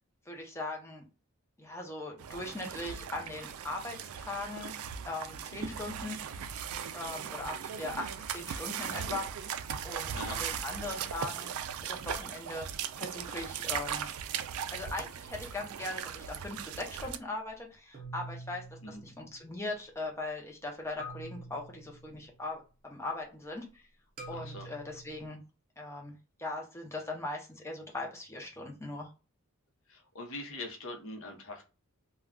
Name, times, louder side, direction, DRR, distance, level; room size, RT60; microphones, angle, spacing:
voice 1, 0.3-1.0 1.6-4.7 5.0-6.5 6.9-9.3 9.8-11.5 11.8-12.7 13.0-14.1 14.7-23.9 24.3-25.4 25.8-29.1, left 2 dB, 10° left, 0 dB, 0.6 m, -40 dB
sound 1, 2.2-17.2, right 8 dB, 75° right, 0.3 m, -38 dB
sound 2, 15.2-16.0 17.9-19.7 21.0-22.5 24.2-25.3, right 1 dB, 40° right, 0.7 m, -47 dB
voice 2, 24.3-24.7 29.9-31.6, left 2 dB, 60° left, 3 dB, 0.7 m, -42 dB
2.2 x 2.2 x 3.6 m, 0.32 s
head